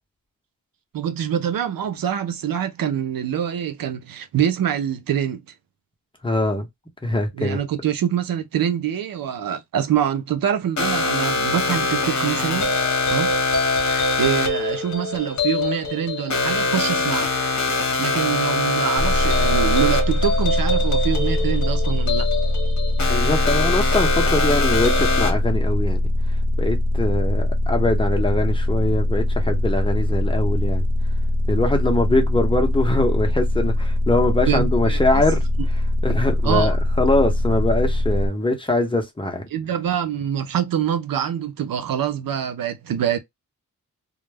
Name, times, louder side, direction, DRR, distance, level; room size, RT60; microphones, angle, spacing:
voice 1, 0.9-5.4 7.4-12.8 13.1-13.4 13.9-17.3 18.0-22.3 34.5-35.2 36.4-36.7 39.5-43.2, right 9 dB, 80° right, 0.5 m, -25 dB
voice 2, 6.2-6.7 7.0-7.6 23.1-26.0 26.6-30.9 31.5-35.4 36.0-39.4, left 2 dB, 15° left, 0.8 m, -22 dB
sound 1, 10.8-25.3, left 3 dB, 55° left, 0.9 m, -23 dB
sound 2, 19.0-38.3, left 1 dB, 45° right, 1.0 m, -22 dB
2.2 x 2.1 x 3.3 m
wide cardioid pair, 100°, 34 cm